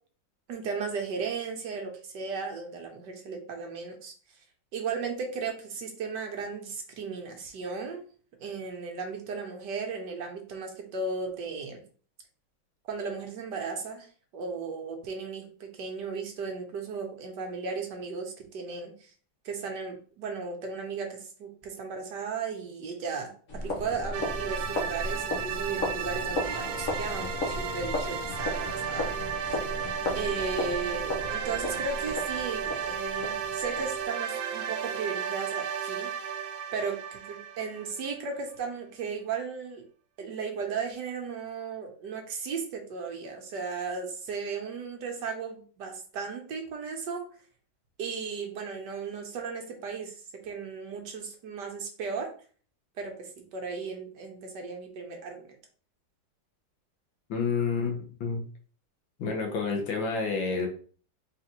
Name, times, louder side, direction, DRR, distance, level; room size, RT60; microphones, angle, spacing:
voice 1, 0.5-4.1 4.7-8.1 8.4-11.8 12.9-14.1 14.3-19.1 19.4-29.1 30.1-36.1 36.7-39.8 40.2-47.3 48.0-52.3 53.0-55.6, right 5 dB, 70° right, 3 dB, 1.3 m, -35 dB
sound 1, 23.5-34.1, left 2 dB, 45° left, 1.3 m, -35 dB
sound 2, 24.1-38.3, right 7 dB, 90° right, 1.4 m, -34 dB
voice 2, 57.3-58.4 59.2-60.7, left 4 dB, 75° left, 2 dB, 1.7 m, -29 dB
4.0 x 3.6 x 2.9 m, 0.42 s
omnidirectional pair, 2.1 m